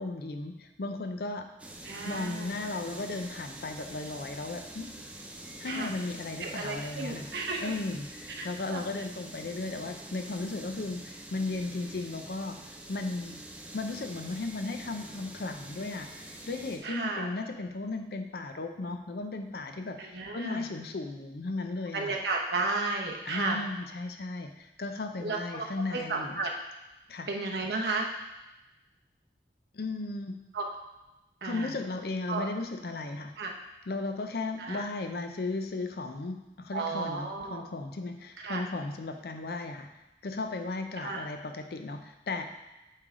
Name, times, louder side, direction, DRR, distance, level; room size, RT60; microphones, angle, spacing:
voice 1, 0.0-1.5 2.0-4.9 5.6-7.3 7.6-12.6 12.9-13.4 13.7-22.2 23.3-26.4 27.1-27.3 29.7-30.4 31.4-33.3 33.9-39.9 40.2-42.5, left 3 dB, 60° left, 6 dB, 0.5 m, -35 dB
sound 1, 1.6-16.8, right 1 dB, 5° right, 0.4 m, -45 dB
voice 2, 1.8-2.5 5.7-5.9 6.4-7.7 8.4-8.8 16.8-17.3 20.0-20.6 21.9-23.6 25.2-26.5 27.3-28.1 30.5-30.7 31.4-31.7 32.3-32.5 33.4-33.5 34.6-34.9 36.7-37.6 38.4-38.6 41.0-41.3, right 3 dB, 70° right, 0 dB, 0.9 m, -33 dB
8.5 x 3.4 x 3.7 m, 1.0 s
head